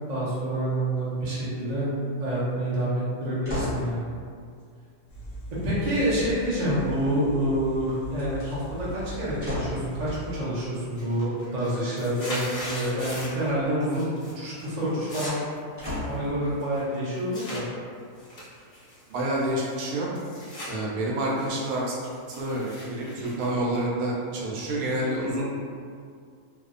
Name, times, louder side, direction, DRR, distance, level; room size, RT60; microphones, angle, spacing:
voice 1, 0.1-1.9 2.2-4.1 5.6-14.1 14.3-15.4 16.0-17.6, right 1 dB, 55° right, -9 dB, 0.4 m, -27 dB
sound 1, 3.4-3.9 6.4-7.1 8.1-8.5 9.4-9.9 13.4-13.9 15.8-16.3 17.0-17.1, left 1 dB, 10° right, 0.8 m, -34 dB
sound 2, 5.1-10.4, right 1 dB, 65° left, 0.8 m, -40 dB
sound 3, 10.1-10.5 10.8-13.5 13.8-14.3 14.6-17.6 18.2-20.7 21.1-24.2, equal, 50° left, 0.4 m, -40 dB
voice 2, 19.1-20.1 20.7-22.0 22.4-25.5, right 1 dB, 75° right, -4 dB, 1.0 m, -28 dB
2.6 x 2.1 x 2.4 m, 2.2 s
omnidirectional pair, 1.6 m